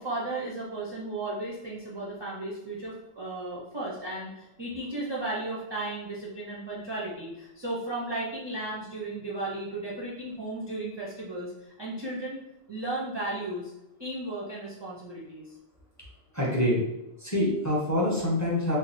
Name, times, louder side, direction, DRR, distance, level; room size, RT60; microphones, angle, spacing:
voice 1, 0.0-12.4 12.7-13.7 14.0-15.5, right 2 dB, 35° right, -6 dB, 0.4 m, -35 dB
voice 2, 16.3-16.8 17.2-18.8, left 1 dB, 15° left, -5 dB, 0.7 m, -25 dB
3.1 x 2.0 x 4.0 m, 0.90 s
omnidirectional pair, 1.2 m